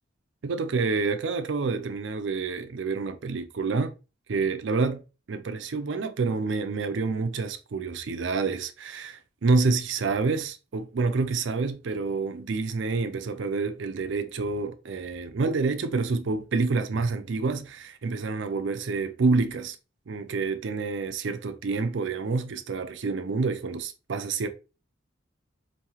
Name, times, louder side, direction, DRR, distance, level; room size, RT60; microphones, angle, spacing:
voice 1, 0.4-3.9 4.3-5.0 5.3-19.8 20.1-24.5, right 4 dB, 70° right, 0.5 m, -28 dB
5.1 x 2.7 x 2.9 m
head